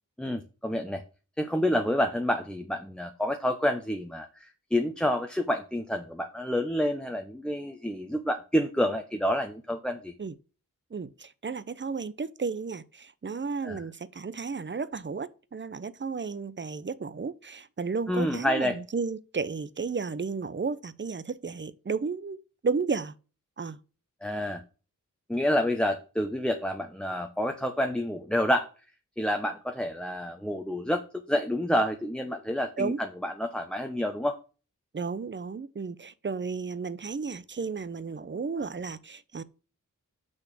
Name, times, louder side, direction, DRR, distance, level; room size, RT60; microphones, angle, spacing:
voice 1, 0.2-1.0 1.4-10.1 13.6-13.8 18.1-18.8 24.2-24.6 25.3-28.7 29.2-34.4, left 1 dB, 5° left, 0.9 m, -28 dB
voice 2, 10.9-23.1 23.6-23.8 32.8-33.0 34.9-39.4, right 5 dB, 35° right, 0.7 m, -33 dB
6.3 x 6.2 x 6.1 m
wide cardioid pair, 80°, 32 cm